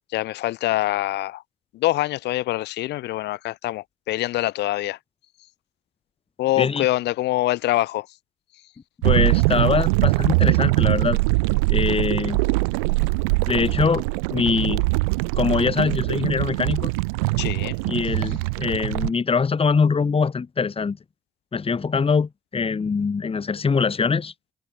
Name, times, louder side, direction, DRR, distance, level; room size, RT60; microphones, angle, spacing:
voice 1, 0.1-1.4 1.7-5.0 6.4-8.1 17.4-17.7, left 16 dB, 75° left, 0.9 m, -24 dB
voice 2, 9.0-11.2 11.7-12.4 13.5-14.9 15.3-16.9 17.8-21.0 21.5-24.3, left 5 dB, 35° left, 1.0 m, -23 dB
sound 1, 9.0-19.1, right 28 dB, 90° right, 0.4 m, -22 dB
hypercardioid pair, 45°, 18 cm